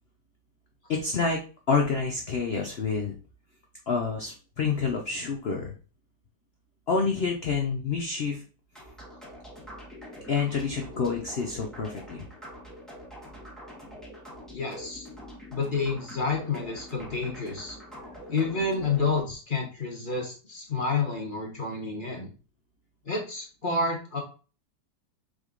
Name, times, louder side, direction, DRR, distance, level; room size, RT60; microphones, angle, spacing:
voice 1, 0.9-3.1 3.9-5.7 6.9-8.4 10.3-12.2, left 5 dB, 75° left, 2 dB, 0.5 m, -28 dB
sound 1, 8.7-19.2, equal, ahead, 0.9 m, -44 dB
voice 2, 14.5-15.1 15.5-17.8 18.3-22.3 23.1-24.2, left 4 dB, 35° left, 0 dB, 0.9 m, -29 dB
5.1 x 3.6 x 2.4 m, 0.36 s
omnidirectional pair, 2.0 m